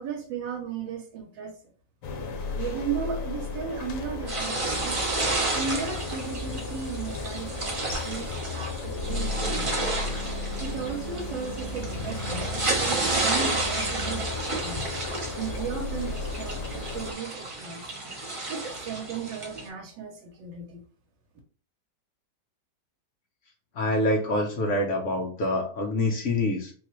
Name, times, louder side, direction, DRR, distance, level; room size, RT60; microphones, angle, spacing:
voice 1, 0.0-1.5 2.5-5.0 5.5-9.8 10.6-14.8 15.4-17.8 18.5-20.8, right 6 dB, 90° right, 0 dB, 1.4 m, -35 dB
sound 1, 2.0-17.1, left 3 dB, 85° left, 1.4 m, -34 dB
sound 2, 4.3-19.7, right 2 dB, 55° right, 0.3 m, -31 dB
sound 3, 9.1-14.3, right 7 dB, 70° right, 0.8 m, -43 dB
voice 2, 23.7-26.7, left 1 dB, 65° left, 1 dB, 0.7 m, -26 dB
4.1 x 2.3 x 3.0 m, 0.42 s
omnidirectional pair, 1.9 m